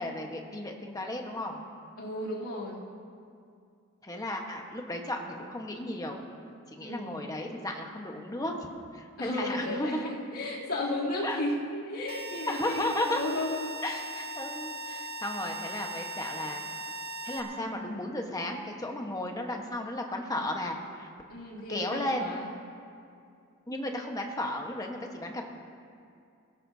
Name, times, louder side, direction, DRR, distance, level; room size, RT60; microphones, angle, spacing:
voice 1, 0.0-1.6 4.0-6.2 6.7-8.7 8.9-10.1 11.2-11.4 12.5-13.2 13.8-16.6 17.2-21.1 21.7-22.3 23.7-25.4, left 1 dB, 15° left, 2 dB, 1.2 m, -34 dB
voice 2, 2.0-2.8 6.8-7.1 9.2-13.8 21.3-22.5, left 1 dB, 80° left, -6 dB, 3.1 m, -34 dB
sound 1, 12.1-17.4, right 1 dB, 50° right, 1.6 m, -39 dB
20.5 x 16.5 x 2.8 m, 2.4 s
head